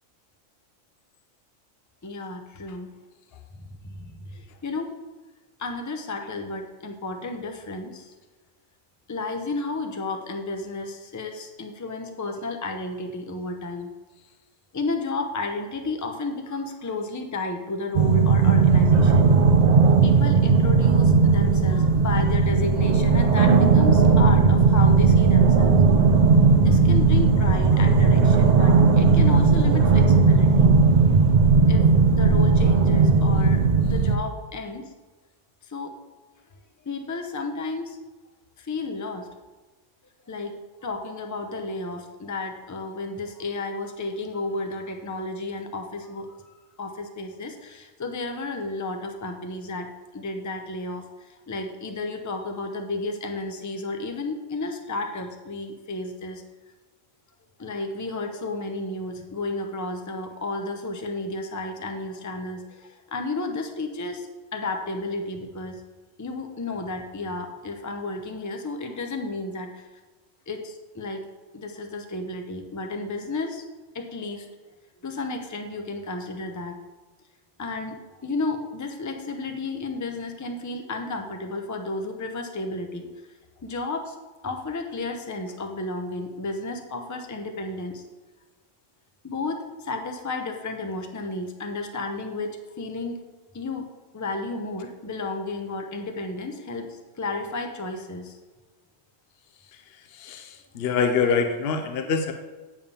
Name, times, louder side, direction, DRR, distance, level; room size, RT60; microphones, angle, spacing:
voice 1, 2.0-2.9 3.6-4.9 5.6-8.1 9.1-13.9 14.7-19.4 20.0-25.8 26.6-30.7 31.7-34.9 35.6-36.0 36.8-38.0 38.6-39.3 40.3-40.6 40.8-46.5 46.8-56.4 57.6-65.8 66.2-69.9 70.5-71.2 71.5-73.6 73.9-74.5 75.0-76.8 77.6-83.1 83.6-84.2 84.4-88.0 89.2-93.2 93.5-93.9 94.1-98.4, left 2 dB, 20° left, 4 dB, 0.6 m, -32 dB
sound 1, 17.9-34.2, right 4 dB, 55° right, 0.5 m, -17 dB
voice 2, 100.1-102.3, left 5 dB, 55° left, 6 dB, 0.9 m, -25 dB
9.4 x 3.5 x 6.8 m, 1.2 s
omnidirectional pair, 1.3 m